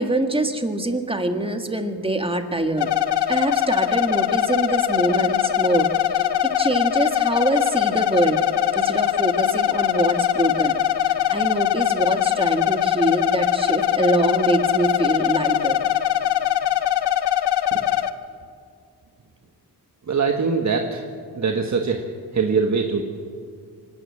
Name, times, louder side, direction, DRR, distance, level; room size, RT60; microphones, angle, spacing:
voice 1, 0.0-2.9 3.3-6.3 6.6-8.4 8.8-10.8 11.0-15.8, right 2 dB, 15° right, 6 dB, 1.7 m, -24 dB
sound 1, 2.8-18.1, left 11 dB, 80° left, 1.0 m, -22 dB
voice 2, 20.1-21.0 21.3-22.1 22.3-23.0, right 5 dB, 45° right, 3 dB, 1.5 m, -22 dB
25.0 x 12.5 x 8.6 m, 2.2 s
wide cardioid pair, 95°, 40 cm